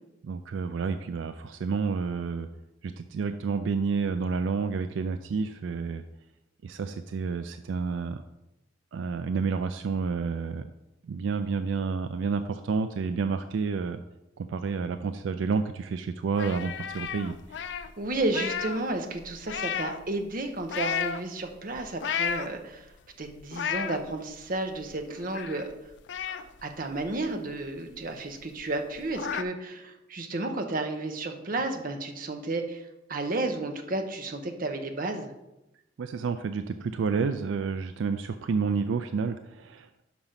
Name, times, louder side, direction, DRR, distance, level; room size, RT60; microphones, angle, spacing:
voice 1, 0.2-2.5 2.8-6.0 6.6-8.2 8.9-10.7 11.0-14.0 14.4-17.6 36.0-40.0, right 5 dB, 80° right, 9 dB, 0.3 m, -30 dB
sound 1, 16.3-18.9 19.2-20.1 20.6-21.2 21.8-22.8 23.2-24.0 24.5-24.6 24.8-25.7 26.1-27.6 28.0-28.1 28.4-28.5 28.8-29.4, left 7 dB, 65° left, 0.4 m, -33 dB
voice 2, 18.0-22.9 23.2-25.7 26.3-35.3, right 2 dB, 50° right, 5 dB, 0.8 m, -32 dB
5.9 x 5.1 x 5.7 m, 0.94 s
head